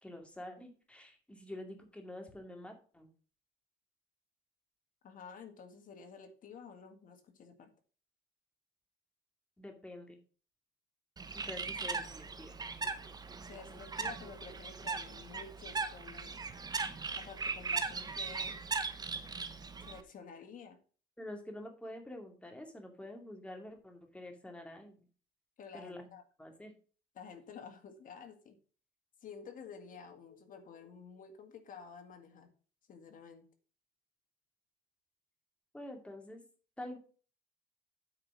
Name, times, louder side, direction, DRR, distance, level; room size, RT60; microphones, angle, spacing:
voice 1, 0.0-3.1 9.6-10.2 11.3-12.6 21.2-25.0 25.7-26.1 26.4-26.7 35.7-36.4 36.8-37.0, left 1 dB, 5° left, 3 dB, 2.4 m, -47 dB
voice 2, 5.0-7.7 13.5-16.4 17.1-18.6 19.8-20.8 25.6-26.2 27.2-28.6 29.2-32.5 32.9-33.4, left 6 dB, 55° left, 6 dB, 1.9 m, -51 dB
Bird, 11.2-20.0, right 4 dB, 25° right, 1.0 m, -39 dB
8.7 x 4.9 x 6.1 m, 0.39 s
cardioid pair, 110°, 17 cm